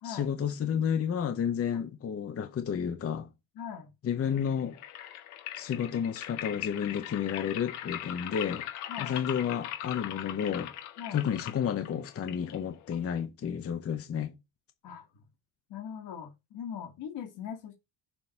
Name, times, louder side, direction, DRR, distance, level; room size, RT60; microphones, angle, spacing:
voice 1, 0.0-3.3 4.0-4.8 5.6-8.7 9.0-10.7 11.1-14.3, left 8 dB, 30° left, 0.8 m, -31 dB
voice 2, 3.6-3.9 8.9-9.2 11.0-11.3 14.8-15.1 15.7-17.7, left 8 dB, 55° left, 1.9 m, -40 dB
sound 1, 4.2-13.3, left 12 dB, 85° left, 1.7 m, -40 dB
7.0 x 3.9 x 6.4 m
cardioid pair, 160°, 49 cm